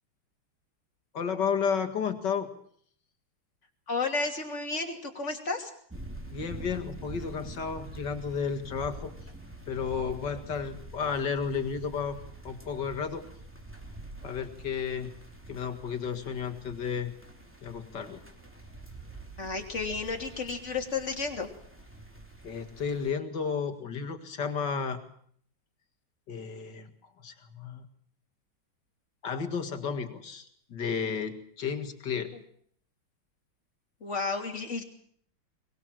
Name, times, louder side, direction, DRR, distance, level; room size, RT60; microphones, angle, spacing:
voice 1, 1.1-2.5 6.3-9.1 9.7-12.2 12.4-13.3 14.2-15.1 15.5-17.1 17.6-18.2 22.4-25.0 26.3-26.9 27.2-27.9 29.2-32.3, left 6 dB, 55° left, 6 dB, 2.5 m, -32 dB
voice 2, 3.9-5.7 19.4-21.5 34.0-34.8, left 4 dB, 35° left, 3 dB, 3.2 m, -32 dB
sound 1, 5.9-23.1, right 1 dB, 5° right, 2.9 m, -46 dB
22.5 x 21.0 x 7.6 m, 0.62 s
omnidirectional pair, 2.3 m